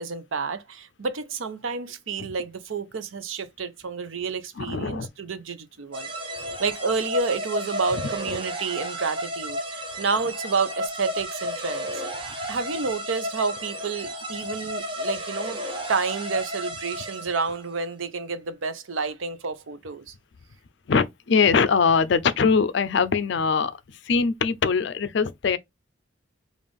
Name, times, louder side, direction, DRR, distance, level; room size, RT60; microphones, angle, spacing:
voice 1, 0.0-6.1 6.6-11.9 12.5-15.6 15.9-20.1, right 4 dB, 80° right, 0.6 m, -29 dB
voice 2, 4.6-5.1 20.9-25.6, left 5 dB, 60° left, 0.4 m, -22 dB
sound 1, 5.9-17.6, equal, 25° right, 0.8 m, -33 dB
5.1 x 2.5 x 3.5 m
head